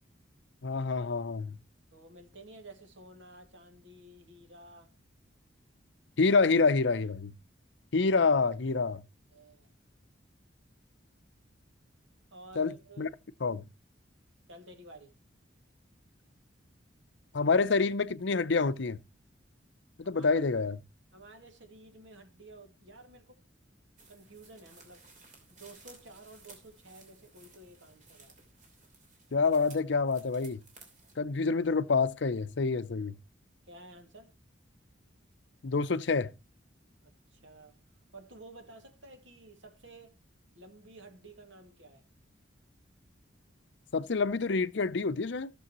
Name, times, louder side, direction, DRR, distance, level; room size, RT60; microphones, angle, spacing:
voice 1, 0.6-1.6 6.2-7.3 7.9-9.0 12.6-13.1 13.4-13.6 17.3-19.0 20.0-20.8 29.3-30.6 31.2-33.1 35.6-36.3 43.9-45.5, left 4 dB, 65° left, 0.6 m, -27 dB
voice 2, 1.9-4.9 9.3-9.7 12.3-13.1 14.5-15.1 20.0-20.3 21.1-23.4 24.1-25.1 25.5-28.3 33.7-34.3 37.0-37.8 38.1-40.2 40.5-42.0, right 2 dB, 70° right, 2.2 m, -52 dB
sound 1, 24.0-31.2, right 4 dB, 40° right, 2.8 m, -57 dB
15.0 x 6.9 x 3.0 m
head